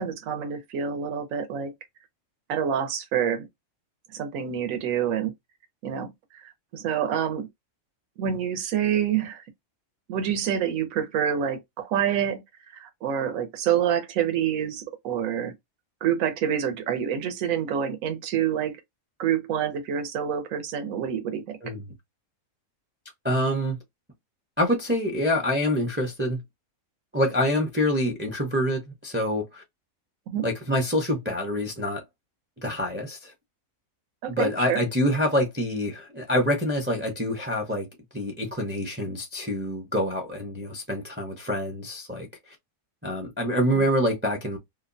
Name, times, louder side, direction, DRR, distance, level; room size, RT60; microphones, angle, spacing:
voice 1, 0.0-1.7 2.5-3.5 4.1-5.3 5.8-6.1 6.4-7.5 8.2-9.4 10.1-12.4 12.7-15.5 16.0-18.8 19.2-21.6 30.3-30.5 34.2-34.8, right 9 dB, 70° right, 1.1 m, -27 dB
voice 2, 21.6-21.9 23.2-23.8 24.6-26.4 27.1-29.6 30.4-32.0 32.6-33.3 34.3-37.9 38.1-42.6 43.0-44.6, equal, 15° right, 0.5 m, -26 dB
2.8 x 2.1 x 2.5 m
omnidirectional pair, 1.5 m